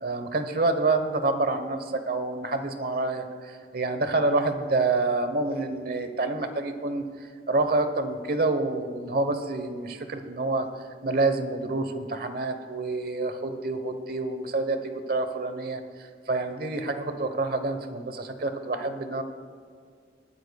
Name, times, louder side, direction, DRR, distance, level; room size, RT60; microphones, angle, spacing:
voice 1, 0.0-10.7 11.0-15.8 16.3-19.2, right 3 dB, 55° right, 8 dB, 1.1 m, -27 dB
21.0 x 13.0 x 2.3 m, 2.1 s
head